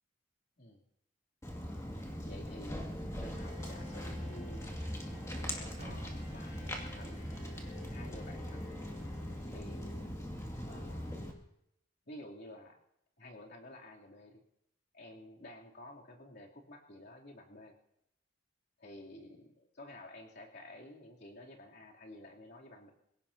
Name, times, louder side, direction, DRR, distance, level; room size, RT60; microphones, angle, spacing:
Walk footsteps, 1.4-11.3, equal, 15° left, 2.3 m, -41 dB
voice 1, 1.9-2.9 3.2-4.7 5.3-7.3 7.9-8.8 9.5-10.2 10.6-11.2 12.1-12.8 13.2-14.4 14.9-17.8 18.8-22.9, left 1 dB, 55° left, -3 dB, 3.1 m, -52 dB
Bowed string instrument, 3.2-10.1, left 1 dB, 5° right, 5.0 m, -56 dB
sound 1, 4.8-8.7, right 1 dB, 35° right, 0.9 m, -54 dB
26.5 x 17.0 x 2.8 m, 0.78 s
head